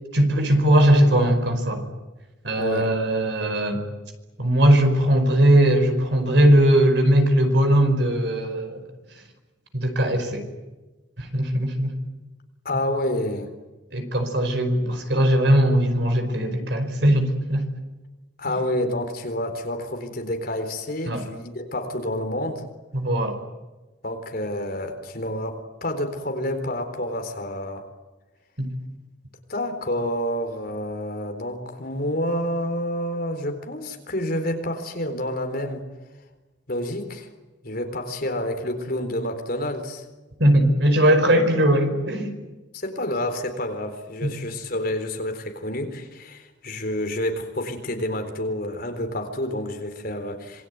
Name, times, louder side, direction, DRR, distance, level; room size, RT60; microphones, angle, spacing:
voice 1, 0.1-1.8 2.4-3.8 4.4-8.8 9.7-10.5 11.2-12.0 13.9-17.7 18.5-18.6 21.0-21.2 22.9-23.4 28.6-28.7 40.4-42.3 44.2-44.3, right 1 dB, 60° right, 6 dB, 5.1 m, -19 dB
voice 2, 2.6-2.9 12.6-13.5 18.4-22.6 24.0-27.9 29.5-35.8 36.7-37.3 37.6-40.1 42.7-50.7, left 1 dB, 50° left, 6 dB, 4.0 m, -29 dB
26.5 x 21.5 x 9.6 m, 1.1 s
head